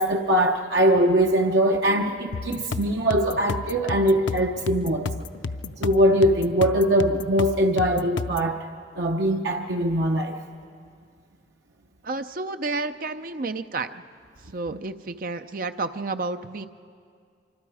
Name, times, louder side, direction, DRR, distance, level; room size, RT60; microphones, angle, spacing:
voice 1, 0.0-5.3 5.8-8.6 9.0-10.4, equal, 70° right, 2 dB, 0.9 m, -22 dB
sound 1, 2.3-8.5, left 3 dB, 85° left, 0.6 m, -32 dB
voice 2, 12.0-14.0 14.5-16.7, right 3 dB, 50° right, 8 dB, 0.6 m, -31 dB
25.5 x 25.0 x 4.9 m, 2.3 s
head